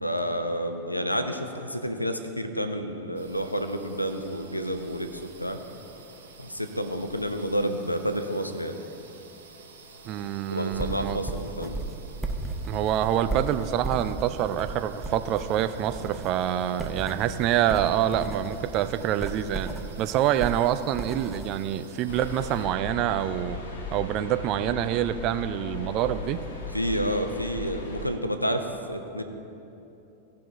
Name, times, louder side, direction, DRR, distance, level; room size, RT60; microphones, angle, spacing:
voice 1, 0.0-5.6 6.4-8.8 10.5-11.8 26.7-29.2, equal, 85° left, 7 dB, 0.7 m, -30 dB
sound 1, 3.1-22.7, right 3 dB, 65° right, 1.6 m, -51 dB
voice 2, 10.0-11.2 12.7-19.7 20.0-23.6 23.9-26.4, right 11 dB, 40° right, 10 dB, 0.4 m, -26 dB
sound 2, 10.8-21.7, right 3 dB, 5° right, 0.8 m, -36 dB
sound 3, 22.1-28.1, left 3 dB, 55° left, 1.3 m, -37 dB
16.5 x 5.7 x 4.0 m, 2.9 s
figure-of-eight pair, 90°, 0 cm